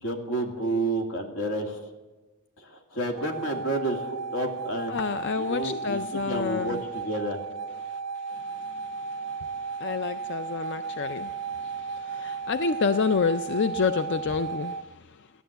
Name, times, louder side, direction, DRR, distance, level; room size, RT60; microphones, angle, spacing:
voice 1, 0.0-1.8 2.6-5.0 5.4-7.4, right 1 dB, 80° left, 2 dB, 2.3 m, -30 dB
sound 1, 3.2-14.8, right 5 dB, 90° right, 0.6 m, -35 dB
voice 2, 4.9-6.8 7.8-8.0 8.3-15.3, left 5 dB, 55° left, 11 dB, 0.4 m, -29 dB
15.0 x 11.0 x 7.9 m, 1.2 s
head